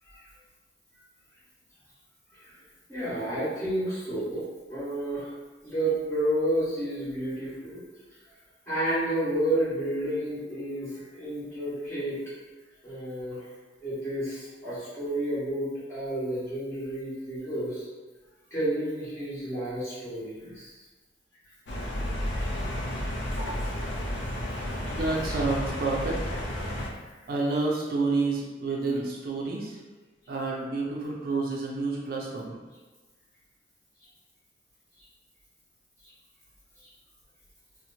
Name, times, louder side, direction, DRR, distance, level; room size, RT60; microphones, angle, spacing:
voice 1, 2.3-2.6 2.9-5.3 5.6-7.8 8.7-12.2 12.8-13.5 13.8-17.9 18.5-20.8 21.4-21.5 26.5-26.6 27.1-27.3 36.8-36.9, right 1 dB, 15° left, -13 dB, 1.4 m, -31 dB
sound 1, 21.7-26.9, equal, 75° left, 0.5 m, -32 dB
voice 2, 24.9-26.4 27.3-29.8 30.3-32.6, right 3 dB, 55° right, -2 dB, 0.4 m, -29 dB
2.8 x 2.1 x 2.6 m, 1.3 s
head